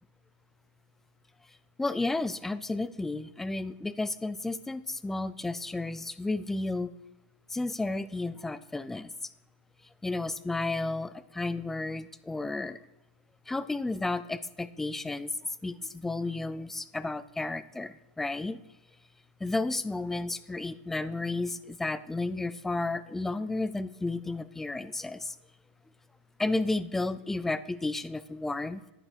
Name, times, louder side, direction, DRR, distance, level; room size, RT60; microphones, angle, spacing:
voice 1, 1.8-6.9 7.5-9.1 10.0-12.8 13.5-18.6 19.4-25.4 26.4-28.8, left 2 dB, 5° left, 15 dB, 0.3 m, -32 dB
9.7 x 8.9 x 5.1 m, 0.98 s
supercardioid pair, 160°, 6 cm